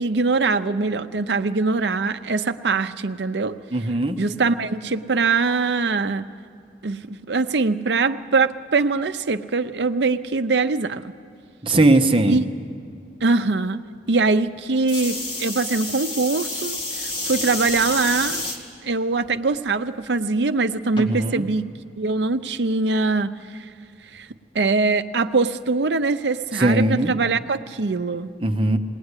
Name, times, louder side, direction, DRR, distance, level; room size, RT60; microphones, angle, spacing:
voice 1, 0.0-3.9 4.2-6.3 6.8-11.1 12.3-12.4 13.2-13.8 14.1-18.4 18.8-21.7 22.0-23.3 24.1-24.3 24.5-28.3, right 3 dB, 75° right, 10 dB, 0.7 m, -22 dB
voice 2, 3.7-4.2 11.6-12.4 20.9-21.5 26.6-27.1 28.4-28.8, right 2 dB, 30° right, 5 dB, 1.0 m, -19 dB
sound 1, 14.9-18.6 19.2-19.7 21.0-21.1, left 2 dB, 30° left, 2.1 m, -29 dB
20.5 x 18.5 x 9.8 m, 2.3 s
head